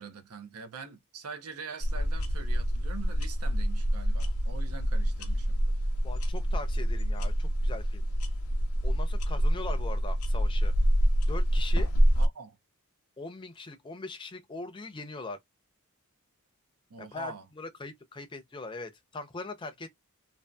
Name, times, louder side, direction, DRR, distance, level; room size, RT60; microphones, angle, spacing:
voice 1, 0.0-5.6 12.2-12.6 16.9-17.4, right 5 dB, 80° right, 0.6 m, -44 dB
sound 1, 1.8-12.3, equal, 75° left, 0.7 m, -26 dB
voice 2, 6.0-8.1 8.8-10.7 11.3-11.9 13.2-15.4 17.0-19.9, left 3 dB, 20° left, 0.5 m, -41 dB
2.6 x 2.4 x 2.2 m
head